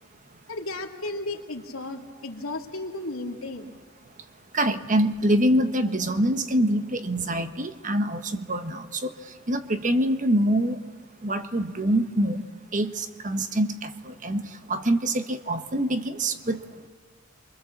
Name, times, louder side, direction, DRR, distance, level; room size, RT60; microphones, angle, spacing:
voice 1, 0.5-3.8, left 2 dB, 85° left, 2 dB, 2.5 m, -34 dB
voice 2, 4.5-9.1 9.5-10.8 11.2-16.6, right 1 dB, 40° right, 8 dB, 1.3 m, -25 dB
28.0 x 24.0 x 7.4 m, 1.5 s
head